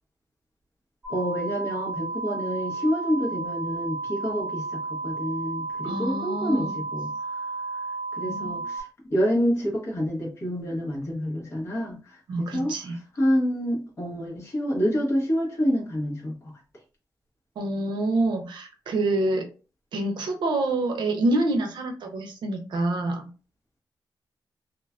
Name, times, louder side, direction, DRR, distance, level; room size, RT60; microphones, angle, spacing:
sound 1, 1.0-8.8, right 3 dB, 20° right, 0.8 m, -33 dB
voice 1, 1.1-7.1 7.7-7.8 8.2-12.7 13.2-16.3, equal, 35° left, -3 dB, 1.0 m, -27 dB
voice 2, 5.8-6.8 8.2-8.5 12.3-13.0 17.6-19.5 19.9-23.3, right 2 dB, 75° right, 4 dB, 0.5 m, -27 dB
2.4 x 2.1 x 2.4 m, 0.35 s
wide cardioid pair, 170°, 8 cm